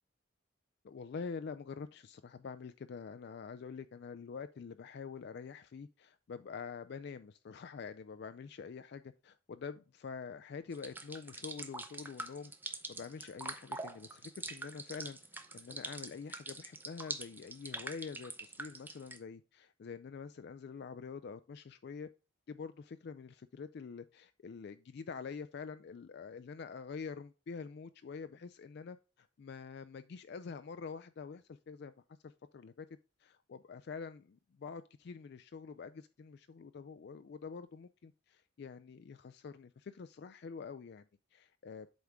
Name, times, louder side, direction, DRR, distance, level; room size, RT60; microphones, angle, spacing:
voice 1, 0.8-15.2 15.5-22.1 22.5-31.9 32.2-32.9 33.2-41.9, left 5 dB, 55° left, 0.3 m, -46 dB
sound 1, 10.7-19.2, right 2 dB, 10° right, 0.5 m, -44 dB
8.0 x 3.6 x 4.7 m
head